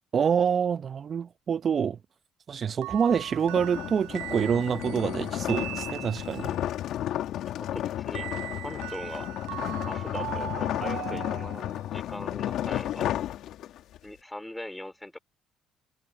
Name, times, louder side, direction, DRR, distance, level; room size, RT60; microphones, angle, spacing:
voice 1, 0.1-2.0 2.5-6.5, right 7 dB, 45° right, 0.7 m, -26 dB
sound 1, 2.8-6.6 8.1-11.9, right 24 dB, 80° right, 5.0 m, -39 dB
sound 2, 3.0-14.0, left 12 dB, 65° left, 1.8 m, -33 dB
voice 2, 7.2-8.3 8.5-9.3 9.8-13.1 14.0-15.2, left 1 dB, 10° left, 3.0 m, -41 dB
hypercardioid pair, 65°, 0 cm